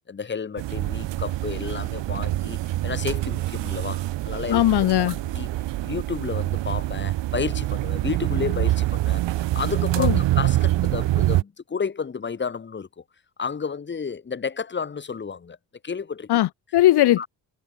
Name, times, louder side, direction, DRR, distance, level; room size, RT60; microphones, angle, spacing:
voice 1, 0.1-4.6 5.0-5.5 5.8-13.0 13.4-15.6 15.8-16.3 17.2-17.3, left 5 dB, 25° left, 4.7 m, -31 dB
sound 1, 0.6-11.4, right 15 dB, 75° right, 1.9 m, -25 dB
voice 2, 4.5-5.1 10.0-10.2 16.3-17.2, left 14 dB, 60° left, 1.6 m, -19 dB
cardioid pair, 180°, 44 cm